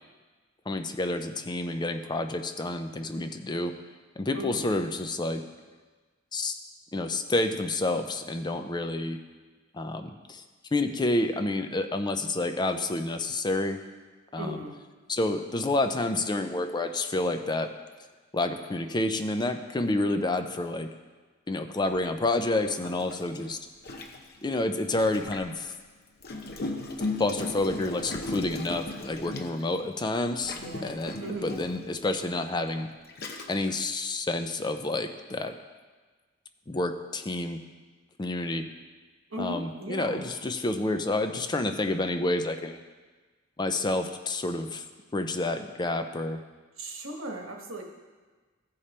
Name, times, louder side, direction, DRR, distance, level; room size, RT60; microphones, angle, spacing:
voice 1, 0.7-3.7 4.2-5.4 6.3-6.5 6.9-9.2 9.7-10.4 10.7-13.8 14.3-14.6 15.1-17.7 18.3-20.9 21.5-23.6 24.4-25.7 27.2-32.9 33.5-35.5 36.7-37.6 38.2-38.7 39.4-42.8 43.6-44.8 45.1-46.4, left 2 dB, 20° left, 7 dB, 0.5 m, -29 dB
voice 2, 4.3-4.7 14.4-14.8 30.4-31.5 39.3-40.2 46.8-47.8, right 1 dB, 85° right, 1 dB, 1.5 m, -37 dB
Gurgling, 21.9-22.1 22.8-25.6 26.2-29.8 30.4-31.9 32.6-32.7 33.1-33.7, left 2 dB, 50° left, 0.8 m, -37 dB
15.5 x 5.1 x 4.3 m, 1.3 s
head